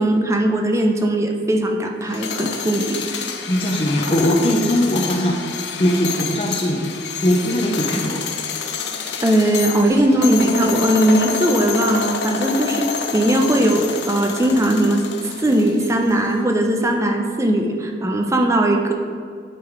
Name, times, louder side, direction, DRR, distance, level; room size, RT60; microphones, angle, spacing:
voice 1, 0.0-3.0 9.2-18.9, right 1 dB, 15° right, 3 dB, 0.6 m, -19 dB
sound 1, 2.0-16.2, left 6 dB, 70° left, 0.6 m, -28 dB
voice 2, 3.5-5.4 5.8-6.9 7.2-8.3, equal, 30° left, -1 dB, 0.6 m, -20 dB
9.6 x 3.8 x 4.6 m, 2.1 s
head